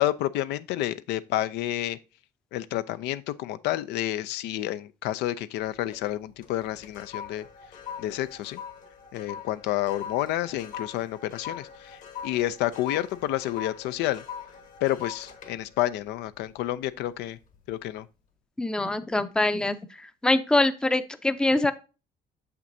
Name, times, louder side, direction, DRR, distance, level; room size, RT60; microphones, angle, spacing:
voice 1, 0.0-2.0 2.5-7.4 8.0-8.6 9.1-14.2 14.8-17.4 17.7-18.1, left 14 dB, 85° left, 0.4 m, -29 dB
sound 1, 5.6-6.1 6.4-17.0 17.4-17.7, left 7 dB, 50° left, 1.2 m, -42 dB
voice 2, 18.6-21.7, left 2 dB, 5° left, 0.5 m, -24 dB
6.7 x 6.0 x 2.6 m
cardioid pair, 110°, 17 cm